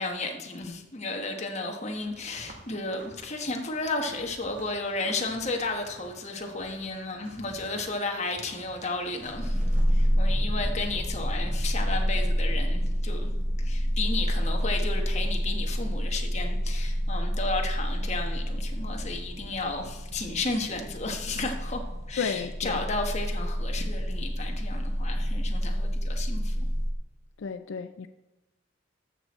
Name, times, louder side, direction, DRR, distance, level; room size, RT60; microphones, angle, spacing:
voice 1, 0.0-9.6 9.9-13.3 13.6-21.8 22.1-26.7, left 3 dB, 35° left, 1.3 m, -33 dB
sound 1, 1.9-10.2, right 1 dB, 45° right, 1.6 m, -51 dB
sound 2, 9.2-26.9, equal, 15° right, 1.2 m, -28 dB
voice 2, 22.2-22.8 27.4-28.1, left 5 dB, 80° left, 0.4 m, -33 dB
13.5 x 6.1 x 4.2 m
head